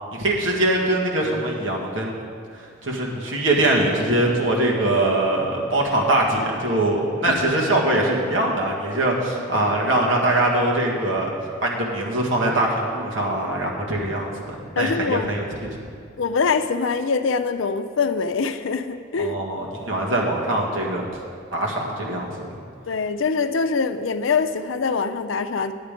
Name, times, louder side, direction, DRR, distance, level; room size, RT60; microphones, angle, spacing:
voice 1, 0.1-2.1 2.8-11.3 11.6-14.3 14.7-15.4 15.7-15.8 19.2-21.0 21.5-22.3, right 1 dB, 85° right, -2 dB, 1.8 m, -22 dB
voice 2, 14.8-15.3 16.2-19.3 22.9-25.7, left 5 dB, 90° left, 10 dB, 0.5 m, -23 dB
10.5 x 8.9 x 5.1 m, 2.3 s
head